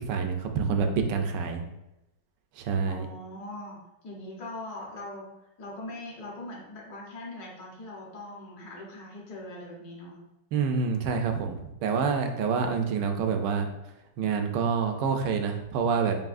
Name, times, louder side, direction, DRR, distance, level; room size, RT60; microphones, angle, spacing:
voice 1, 0.1-1.6 2.6-3.1 10.5-13.7 14.2-16.2, right 5 dB, 80° right, 5 dB, 1.2 m, -27 dB
voice 2, 2.8-5.3 5.6-10.2 11.3-11.4, left 1 dB, 65° left, -3 dB, 1.6 m, -41 dB
7.2 x 2.7 x 2.5 m, 0.91 s
omnidirectional pair, 1.9 m